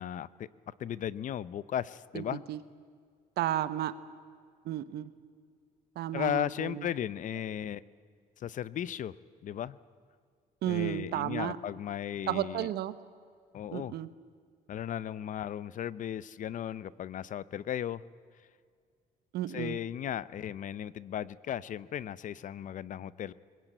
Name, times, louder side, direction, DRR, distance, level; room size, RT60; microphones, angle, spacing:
voice 1, 0.0-2.4 6.1-7.8 8.4-9.1 9.4-9.8 10.7-12.7 13.5-13.9 14.7-18.0 19.5-23.3, left 10 dB, 50° left, 19 dB, 0.6 m, -36 dB
voice 2, 2.1-2.6 3.4-3.9 4.6-5.1 6.0-6.9 10.6-11.6 12.3-13.0 13.7-14.1 19.3-19.8, right 13 dB, 75° right, 14 dB, 1.1 m, -33 dB
21.0 x 19.5 x 9.1 m, 2.1 s
cardioid pair, 110°, 17 cm